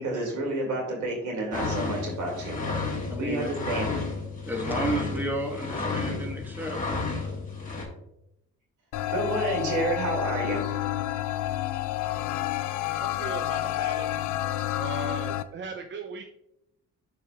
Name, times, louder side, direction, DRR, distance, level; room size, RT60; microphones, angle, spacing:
voice 1, 0.0-2.9 3.2-3.9 9.1-10.7, right 2 dB, 80° right, 0 dB, 2.4 m, -30 dB
sound 1, 1.5-7.8, left 3 dB, 25° left, 1.8 m, -32 dB
voice 2, 3.1-3.5 4.5-6.8, right 1 dB, 5° right, 1 dB, 1.4 m, -31 dB
sound 2, 8.9-15.4, left 14 dB, 75° left, 0.5 m, -29 dB
voice 3, 13.0-14.1 14.8-16.3, right 4 dB, 40° right, 5 dB, 0.5 m, -37 dB
9.9 x 4.7 x 2.3 m, 0.82 s
cardioid pair, 90°, 30 cm